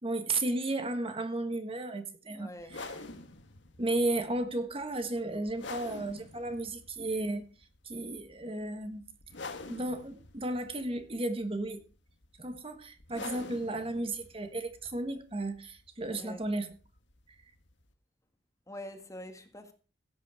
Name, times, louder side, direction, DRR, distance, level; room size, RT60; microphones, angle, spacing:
voice 1, 0.0-2.9 3.8-7.5 7.8-9.0 9.7-11.8 12.4-16.7, right 2 dB, 30° right, 1.5 m, -34 dB
voice 2, 2.3-2.8 13.3-13.5 16.1-16.4 18.7-19.7, left 1 dB, 20° left, 1.7 m, -45 dB
sound 1, 2.6-17.9, left 3 dB, 90° left, 1.7 m, -48 dB
16.5 x 8.6 x 4.9 m
head